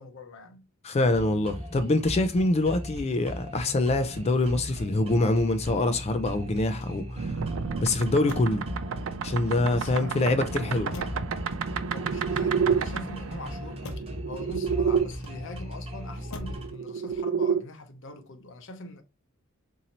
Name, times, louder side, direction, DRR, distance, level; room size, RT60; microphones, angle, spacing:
voice 1, 0.0-0.6 9.7-11.2 11.9-13.8 14.3-19.0, left 2 dB, 60° left, 0.7 m, -42 dB
voice 2, 0.8-7.3 7.8-8.6 9.2-10.9, left 2 dB, 30° left, 0.4 m, -25 dB
sound 1, 1.0-16.7, equal, 30° right, 0.9 m, -38 dB
Motor vehicle (road), 6.6-7.4 8.2-8.7 9.4-10.1 10.9-11.4 12.2-12.9 13.8-14.2 15.1-15.7 16.3-16.7 17.0-17.5, left 1 dB, 90° left, 0.8 m, -45 dB
sound 2, 7.2-15.1 16.3-17.6, right 6 dB, 65° right, 0.4 m, -30 dB
4.0 x 2.7 x 2.9 m
head